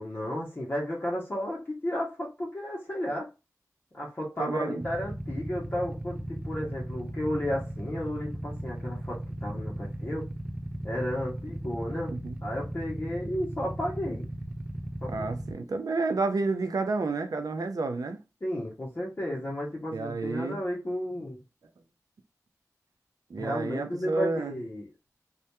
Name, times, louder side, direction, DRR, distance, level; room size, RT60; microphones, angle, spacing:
voice 1, 0.0-3.3 3.9-10.3 10.8-12.2 12.4-14.3 15.0-15.3 18.4-21.4 23.4-24.9, left 1 dB, 35° left, 0.6 m, -33 dB
voice 2, 4.4-4.8 12.1-12.4 15.1-18.2 19.9-20.6 23.3-24.6, right 3 dB, 80° right, 0.4 m, -30 dB
Motorcycle / Idling, 4.8-15.5, right 1 dB, 15° right, 0.4 m, -37 dB
2.2 x 2.1 x 2.8 m
wide cardioid pair, 55°, 6 cm